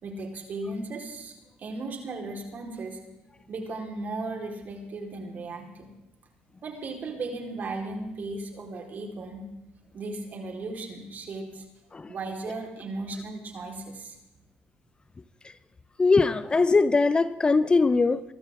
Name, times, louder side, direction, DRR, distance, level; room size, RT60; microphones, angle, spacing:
voice 1, 0.0-3.0 3.5-5.9 6.6-9.4 9.9-11.6 12.1-14.2, right 2 dB, 50° right, 4.6 m, -36 dB
voice 2, 16.0-18.2, left 3 dB, 25° left, 0.7 m, -21 dB
24.5 x 13.0 x 3.9 m
supercardioid pair, 80°, 4 cm